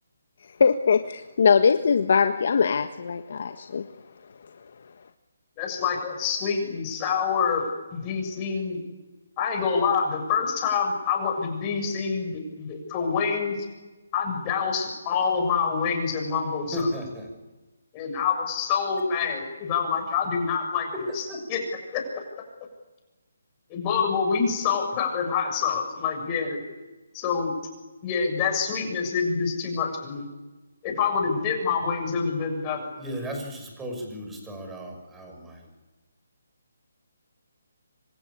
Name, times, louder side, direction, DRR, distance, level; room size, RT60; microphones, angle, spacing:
voice 1, 0.6-3.9, left 6 dB, 55° left, 7 dB, 1.5 m, -21 dB
voice 2, 5.6-8.8 9.4-13.6 14.1-16.7 17.9-20.9 21.1-21.2 21.5-21.6 21.9-22.0 23.7-26.6 27.1-27.5 28.0-30.3 30.8-32.9, left 6 dB, 20° left, 3 dB, 6.8 m, -26 dB
voice 3, 16.7-17.3 20.9-21.6 33.0-35.7, equal, 10° right, 3 dB, 6.0 m, -34 dB
27.0 x 26.0 x 8.5 m, 1.2 s
hypercardioid pair, 160°, 0 cm